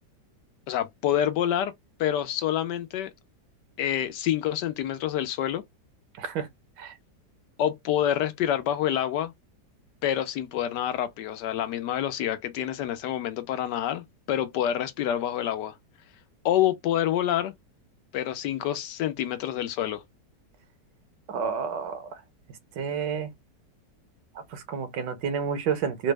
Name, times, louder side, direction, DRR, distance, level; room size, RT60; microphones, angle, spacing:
voice 1, 0.7-1.7 2.0-3.1 3.8-5.6 7.6-9.3 10.0-15.7 16.4-17.5 18.1-20.0, left 11 dB, 80° left, 1.2 m, -27 dB
voice 2, 6.2-6.5 6.8-6.9 21.3-22.1 22.8-23.3 24.5-26.1, right 6 dB, 80° right, 1.4 m, -29 dB
3.9 x 2.0 x 3.3 m
omnidirectional pair, 1.9 m